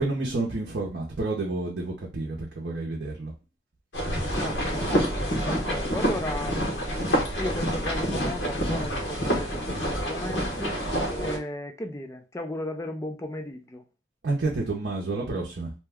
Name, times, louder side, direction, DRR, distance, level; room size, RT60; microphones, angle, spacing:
voice 1, 0.0-3.3 14.2-15.7, right 2 dB, 60° right, 0.7 m, -29 dB
sound 1, 3.9-11.4, equal, 70° left, 1.1 m, -27 dB
voice 2, 4.4-7.0 7.4-10.8 11.2-13.8, left 1 dB, 15° left, 0.4 m, -35 dB
2.8 x 2.2 x 3.4 m
head